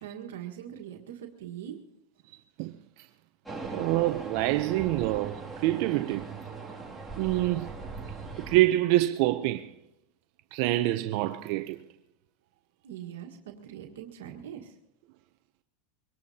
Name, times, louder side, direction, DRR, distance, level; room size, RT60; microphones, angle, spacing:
voice 1, 0.0-1.8 12.8-14.7, right 10 dB, 85° right, 1.5 m, -42 dB
voice 2, 2.3-2.7 3.7-6.3 7.2-7.8 8.4-9.7 10.5-11.8, right 16 dB, 55° right, 0.6 m, -26 dB
sound 1, 3.5-8.6, right 4 dB, ahead, 2.5 m, -40 dB
23.5 x 18.5 x 2.8 m
supercardioid pair, 130°, 0 cm